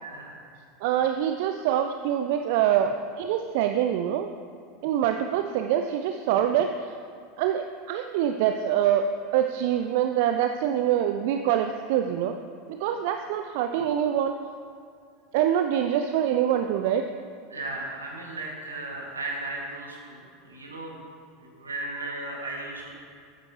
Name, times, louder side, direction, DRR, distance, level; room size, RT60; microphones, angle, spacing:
voice 1, 0.0-0.5 17.5-21.0 21.4-22.9, right 2 dB, 80° right, -2 dB, 2.2 m, -36 dB
voice 2, 0.8-4.3 4.8-6.9 7.4-9.0 9.3-12.3 12.7-14.3 15.3-17.0, right 10 dB, 55° right, 6 dB, 0.4 m, -25 dB
14.5 x 9.6 x 3.1 m, 2.3 s
figure-of-eight pair, 80°, 0 cm